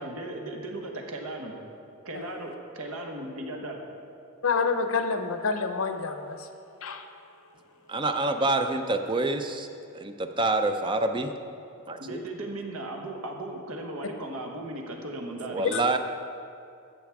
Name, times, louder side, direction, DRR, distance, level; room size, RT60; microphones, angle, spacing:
voice 1, 0.0-1.5 2.0-3.8 12.0-15.6, right 1 dB, 80° right, 2 dB, 1.2 m, -36 dB
voice 2, 4.4-6.5 6.8-7.0 15.6-16.0, left 4 dB, 70° left, 7 dB, 0.7 m, -28 dB
voice 3, 7.9-9.7 9.9-11.3 11.9-12.2 15.5-16.0, right 2 dB, 20° right, 7 dB, 0.4 m, -27 dB
13.5 x 7.3 x 3.5 m, 2.5 s
head